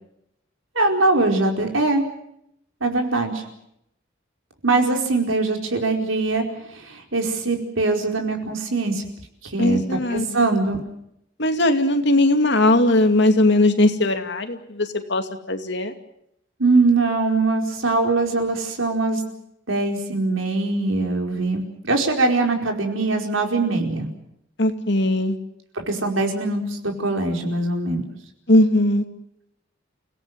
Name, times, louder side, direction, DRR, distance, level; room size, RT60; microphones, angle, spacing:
voice 1, 0.7-2.0 2.8-3.4 4.6-6.4 6.9-9.0 9.5-10.8 16.6-19.2 19.7-24.1 25.7-28.0, right 3 dB, 85° right, 3 dB, 4.7 m, -22 dB
voice 2, 9.6-10.5 11.4-15.9 24.6-25.4 28.5-29.0, left 1 dB, 60° left, 6 dB, 2.5 m, -19 dB
29.5 x 17.5 x 7.8 m, 0.78 s
head